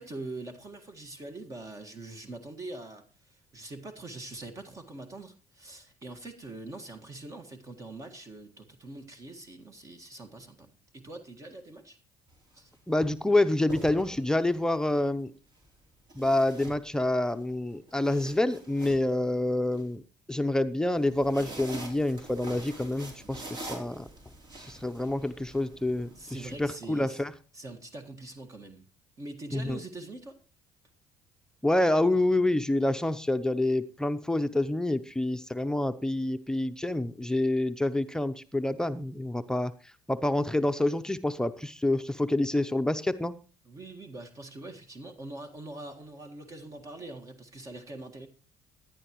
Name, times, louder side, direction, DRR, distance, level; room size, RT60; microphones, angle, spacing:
voice 1, 0.0-12.0 12.5-12.7 26.2-27.2 27.5-28.9 29.2-30.4 43.7-48.3, right 2 dB, 35° right, 6 dB, 1.7 m, -43 dB
sound 1, 12.3-12.5 13.5-14.6 16.1-17.3 17.7-19.8 20.9-26.6, right 1 dB, 55° right, 3.7 m, -45 dB
voice 2, 12.9-15.3 16.2-20.0 20.3-24.1 24.6-26.1 26.6-27.3 29.5-29.8 31.6-39.7 40.1-43.3, left 1 dB, 5° left, 9 dB, 0.7 m, -27 dB
16.5 x 10.5 x 3.1 m, 0.35 s
supercardioid pair, 70°, 9 cm